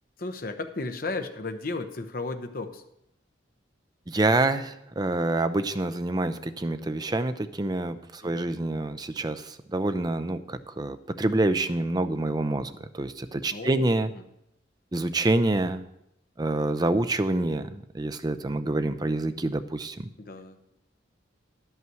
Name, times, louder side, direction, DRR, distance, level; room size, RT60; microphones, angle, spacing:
voice 1, 0.2-2.8 8.2-8.5 13.5-13.9 14.1-14.2 20.2-20.6, left 3 dB, 50° left, 7 dB, 0.8 m, -34 dB
voice 2, 4.1-14.1 14.9-15.8 16.4-20.1, right 2 dB, 20° right, 10 dB, 0.5 m, -27 dB
10.5 x 5.7 x 7.7 m, 0.82 s
head